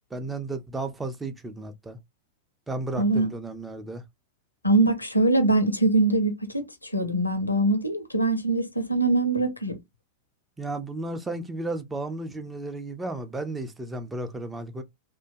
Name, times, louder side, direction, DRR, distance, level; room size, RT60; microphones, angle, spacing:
voice 1, 0.1-2.0 2.7-4.0 10.6-14.8, right 2 dB, 10° right, 0.5 m, -33 dB
voice 2, 3.0-3.3 4.6-9.8, right 2 dB, 85° left, 0.6 m, -23 dB
2.7 x 2.1 x 2.6 m
figure-of-eight pair, 90°, 0 cm